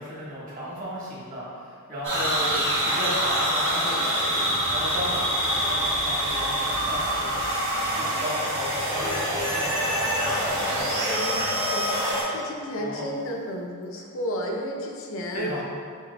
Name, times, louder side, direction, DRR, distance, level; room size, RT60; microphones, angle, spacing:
voice 1, 0.0-4.3 4.7-7.4 7.9-11.2 12.8-13.1 15.3-15.6, equal, 40° right, -7 dB, 1.1 m, -35 dB
sound 1, 2.0-12.2, equal, 60° right, 1.4 m, -25 dB
voice 2, 11.1-12.0 12.3-15.5, equal, 60° left, 0 dB, 0.5 m, -32 dB
6.4 x 2.8 x 2.2 m, 2.1 s
head